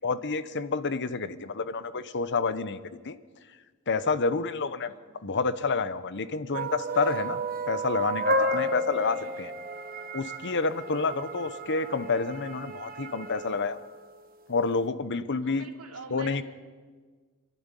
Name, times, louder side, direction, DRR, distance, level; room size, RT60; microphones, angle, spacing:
voice 1, 0.0-2.8 3.0-3.1 3.9-4.9 5.2-7.4 7.7-9.5 10.1-13.8 14.5-15.7 16.1-16.4, left 4 dB, 55° left, 14 dB, 1.0 m, -29 dB
sound 1, 6.5-14.1, right 1 dB, 40° right, 1.3 m, -32 dB
voice 2, 9.0-9.5 15.4-16.4, right 4 dB, 75° right, 3 dB, 3.0 m, -46 dB
28.0 x 11.5 x 9.9 m, 1.5 s
head